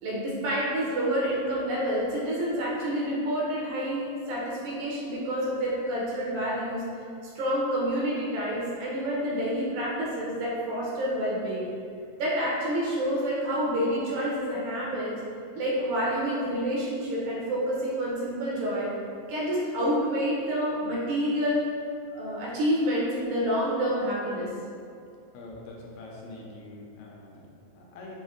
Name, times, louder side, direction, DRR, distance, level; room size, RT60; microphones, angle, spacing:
voice 1, 0.0-6.8 7.4-11.7 12.2-15.1 15.5-18.9 19.3-21.6 22.1-24.5, equal, 80° right, -6 dB, 2.4 m, -28 dB
voice 2, 25.3-28.2, left 2 dB, 85° left, -2 dB, 1.9 m, -44 dB
5.9 x 2.1 x 3.7 m, 2.4 s
omnidirectional pair, 3.4 m